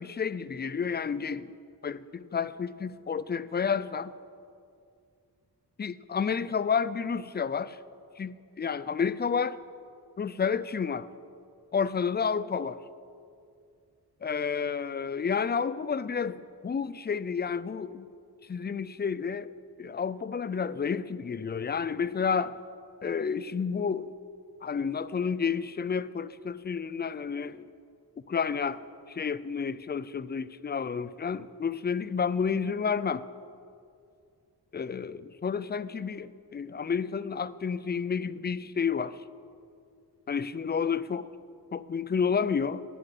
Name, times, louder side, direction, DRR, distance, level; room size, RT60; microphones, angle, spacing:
voice 1, 0.0-1.5 1.8-4.1 5.8-7.8 8.2-9.6 10.2-11.1 11.7-12.8 14.2-18.1 18.5-19.5 19.8-22.6 23.0-24.1 24.6-27.7 28.3-28.8 29.1-33.2 34.7-39.2 40.3-41.2 41.7-42.8, left 6 dB, 25° left, 17 dB, 0.4 m, -30 dB
10.0 x 9.8 x 8.4 m, 2.4 s
wide cardioid pair, 100°, 40 cm